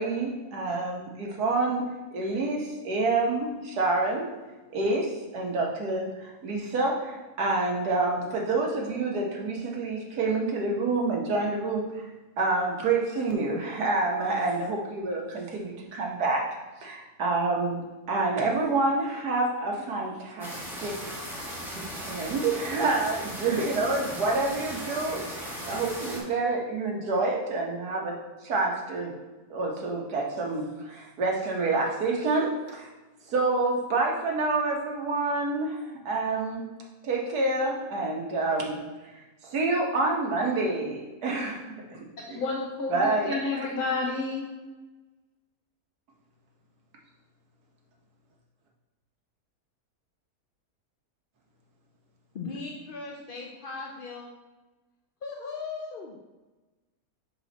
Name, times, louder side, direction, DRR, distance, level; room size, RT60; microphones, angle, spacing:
voice 1, 0.0-1.8 2.1-4.3 4.7-12.0 12.4-16.4 16.8-17.8 18.1-20.5 20.8-21.0 21.7-25.2 25.7-29.1 29.5-32.9 33.3-36.6 37.0-38.8 39.5-42.4 42.9-43.7, right 3 dB, 90° right, -1 dB, 1.8 m, -28 dB
sound 1, 20.4-26.2, equal, ahead, 1.6 m, -37 dB
voice 2, 42.3-44.5, left 3 dB, 80° left, -4 dB, 1.6 m, -30 dB
voice 3, 52.3-54.3 55.2-56.1, left 4 dB, 60° left, 0 dB, 0.5 m, -38 dB
6.0 x 4.8 x 4.1 m, 1.2 s
omnidirectional pair, 1.6 m